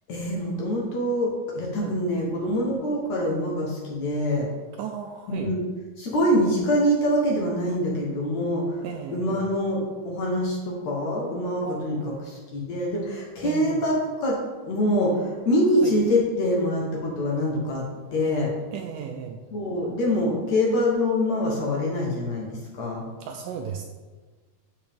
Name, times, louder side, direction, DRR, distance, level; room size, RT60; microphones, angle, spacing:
voice 1, 0.1-4.5 5.3-5.6 6.0-8.8 9.1-9.8 10.0-13.9 14.2-14.4 14.6-17.8 18.1-18.5 19.5-23.0, left 1 dB, 60° left, -2 dB, 2.1 m, -25 dB
voice 2, 4.8-5.5 8.8-9.5 11.6-12.2 13.4-13.8 15.8-15.9 18.7-19.4 23.2-23.8, right 7 dB, 80° right, 3 dB, 2.0 m, -35 dB
8.1 x 6.9 x 3.5 m, 1.3 s
omnidirectional pair, 4.2 m